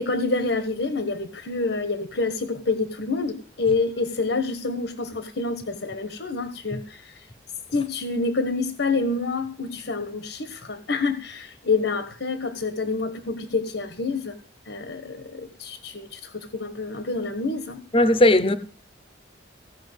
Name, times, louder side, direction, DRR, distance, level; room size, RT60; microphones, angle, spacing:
voice 1, 0.0-7.2 7.7-14.4 14.7-17.8, left 3 dB, 75° left, 1.3 m, -27 dB
voice 2, 17.9-18.6, left 1 dB, 30° left, 0.8 m, -17 dB
16.5 x 5.8 x 8.0 m
head